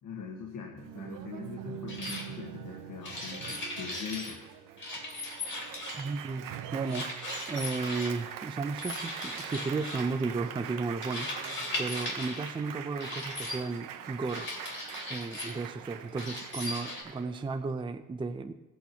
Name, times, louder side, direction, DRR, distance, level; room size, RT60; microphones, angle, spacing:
voice 1, 0.0-4.4, left 6 dB, 75° left, 0 dB, 1.6 m, -42 dB
Applause, 0.8-17.7, right 10 dB, 80° right, 0.9 m, -43 dB
sound 1, 1.9-2.2 3.0-4.4 4.8-6.1 6.8-8.1 8.8-10.1 11.0-12.5 13.0-13.6 14.3-15.6 16.2-17.0, left 2 dB, 35° left, 3.0 m, -38 dB
voice 2, 6.0-6.4 6.7-7.1 7.5-11.3 11.8-14.5 15.1-18.5, right 4 dB, 15° right, 7 dB, 0.5 m, -34 dB
19.5 x 8.4 x 2.9 m, 1.1 s
cardioid pair, 120°, 32 cm